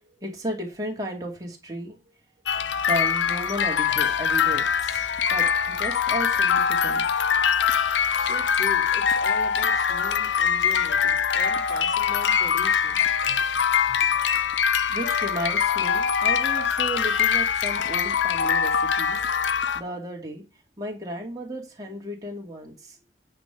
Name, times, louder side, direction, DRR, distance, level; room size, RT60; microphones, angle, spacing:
voice 1, 0.2-2.0 2.9-5.0 5.3-7.0 10.6-10.7 14.9-19.2 19.7-20.4 20.8-23.0, equal, 20° right, 2.3 m, -34 dB
sound 1, 2.5-19.8, left 7 dB, 90° left, 0.6 m, -23 dB
voice 2, 8.2-13.1, left 2 dB, 20° left, 2.4 m, -40 dB
8.9 x 3.7 x 6.9 m
head